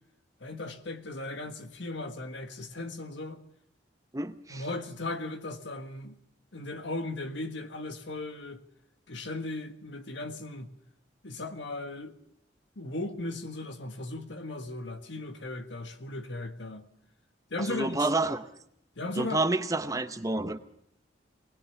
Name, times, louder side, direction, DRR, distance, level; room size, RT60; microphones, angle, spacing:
voice 1, 0.4-3.4 4.5-6.2 6.5-8.6 9.1-10.7 11.2-12.2 12.7-16.9 17.5-18.1 19.0-19.4, left 2 dB, 75° left, 1.5 m, -37 dB
voice 2, 4.1-4.6 17.7-18.4 19.2-20.6, right 2 dB, 20° right, 0.8 m, -29 dB
20.5 x 20.0 x 7.1 m
head